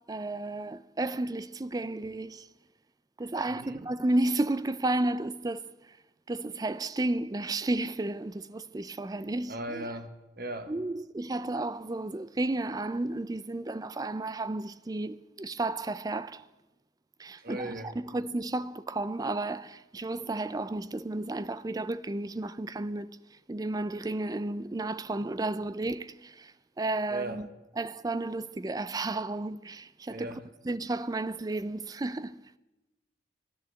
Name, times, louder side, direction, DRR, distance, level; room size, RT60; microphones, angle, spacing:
voice 1, 0.0-2.5 3.2-6.0 6.3-9.9 10.7-16.5 17.2-27.5 27.8-30.4 30.6-32.4, right 2 dB, 20° right, 0.4 m, -32 dB
voice 2, 3.5-3.9 9.5-10.7 17.4-17.9 27.1-27.4 30.1-30.4, right 1 dB, 50° right, 1.2 m, -38 dB
14.0 x 10.5 x 7.8 m
head